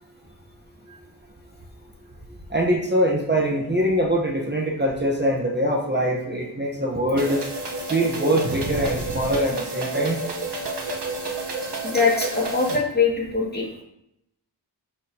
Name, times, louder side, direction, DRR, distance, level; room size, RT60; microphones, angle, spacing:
voice 1, 2.5-7.4 7.9-10.2, equal, 25° right, -2 dB, 1.0 m, -23 dB
sound 1, 7.2-12.8, right 3 dB, 75° right, 1.1 m, -30 dB
voice 2, 11.8-13.7, left 4 dB, 25° left, -3 dB, 2.1 m, -22 dB
7.5 x 6.5 x 2.9 m, 0.81 s
wide cardioid pair, 50°, 42 cm